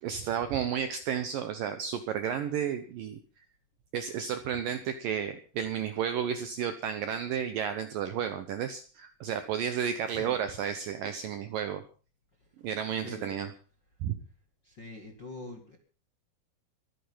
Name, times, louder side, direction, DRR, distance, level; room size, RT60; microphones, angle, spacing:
voice 1, 0.0-3.2 3.9-11.8 12.6-13.5 14.0-14.2, right 8 dB, 75° right, 10 dB, 2.1 m, -32 dB
voice 2, 10.1-10.4 12.4-12.5 13.0-13.3 14.6-15.8, left 2 dB, 40° left, 3 dB, 1.6 m, -44 dB
23.5 x 9.3 x 5.6 m, 0.38 s
omnidirectional pair, 5.1 m